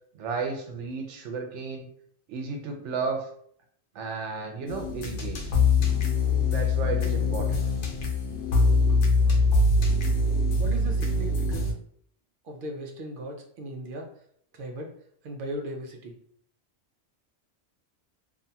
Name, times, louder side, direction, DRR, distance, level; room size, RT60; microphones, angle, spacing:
voice 1, 0.1-1.9 2.3-3.3 3.9-5.4 6.5-7.6, right 4 dB, 90° right, 3 dB, 0.9 m, -33 dB
sound 1, 4.7-11.7, left 3 dB, 85° left, 0.9 m, -23 dB
voice 2, 10.6-11.7 12.4-14.1 14.6-14.9 15.2-16.1, right 1 dB, 60° right, 2 dB, 0.6 m, -37 dB
2.6 x 2.3 x 2.7 m, 0.64 s
omnidirectional pair, 1.2 m